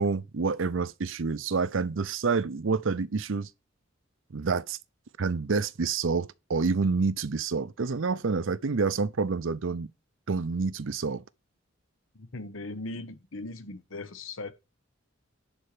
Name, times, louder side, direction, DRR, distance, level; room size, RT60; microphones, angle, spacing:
voice 1, 0.0-3.5 4.3-4.8 5.2-9.9 10.3-11.2, right 4 dB, 70° right, 0.6 m, -28 dB
voice 2, 12.1-14.5, left 2 dB, 75° left, 1.1 m, -39 dB
11.0 x 4.4 x 6.8 m
head